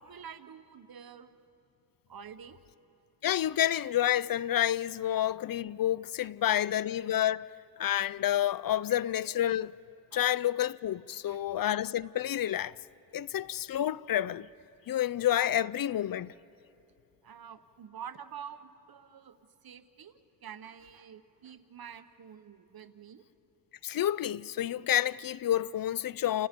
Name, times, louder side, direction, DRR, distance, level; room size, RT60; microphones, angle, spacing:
voice 1, 0.0-1.4 2.1-2.6 6.2-6.6 10.1-10.2 11.1-11.4 17.2-19.4 19.6-23.2, right 8 dB, 85° right, 0.9 m, -48 dB
voice 2, 3.2-7.5 7.8-9.7 10.1-12.7 13.1-14.5 14.9-16.3 23.8-26.5, left 11 dB, 70° left, 0.5 m, -29 dB
29.5 x 28.0 x 5.2 m
cardioid pair, 60°, 35 cm